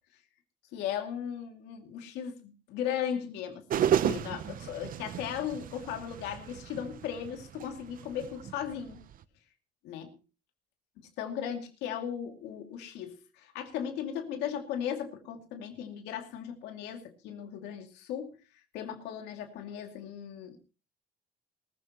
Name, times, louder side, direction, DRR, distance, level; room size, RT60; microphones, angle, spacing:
voice 1, 0.7-9.0 9.8-10.2 11.2-20.6, left 9 dB, 90° left, 2.5 m, -37 dB
sound 1, 3.7-9.2, right 9 dB, 55° right, 0.8 m, -33 dB
19.5 x 14.5 x 3.0 m
cardioid pair, 110°, 17 cm